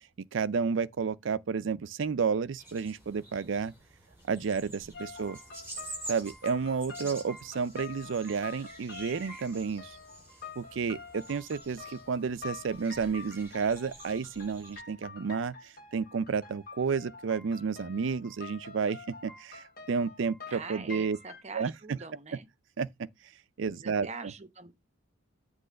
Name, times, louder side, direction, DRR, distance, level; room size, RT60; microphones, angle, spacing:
voice 1, 0.2-3.7 4.3-5.4 6.1-10.0 10.6-21.2 21.5-22.0 22.8-22.9 23.6-24.1, right 5 dB, 65° right, 0.4 m, -31 dB
sound 1, 2.6-14.8, right 2 dB, 10° right, 3.8 m, -48 dB
voice 2, 4.6-5.1 20.5-22.5 23.7-24.7, right 4 dB, 35° right, 0.9 m, -45 dB
sound 2, 4.9-21.4, left 4 dB, 50° left, 1.7 m, -47 dB
7.8 x 3.1 x 6.3 m
head